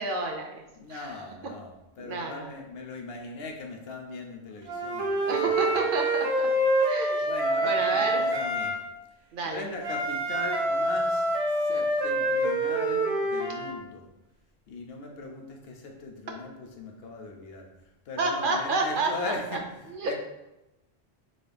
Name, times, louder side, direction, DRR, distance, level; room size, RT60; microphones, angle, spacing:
voice 1, 0.0-0.6 0.9-1.2 2.0-2.5 5.3-6.5 6.9-7.3 7.6-8.3 9.3-9.6 18.2-19.3 19.9-20.1, right 2 dB, 60° right, 2 dB, 0.7 m, -30 dB
voice 2, 0.8-5.7 7.2-8.8 9.4-11.3 11.6-14.1 14.7-17.7 18.1-19.6 20.0-20.1, left 3 dB, 70° left, 2 dB, 0.9 m, -39 dB
Wind instrument woodwind instrument, 4.7-8.8 9.8-13.7, right 1 dB, 80° right, 0.9 m, -26 dB
3.9 x 2.7 x 3.3 m, 0.93 s
omnidirectional pair, 1.1 m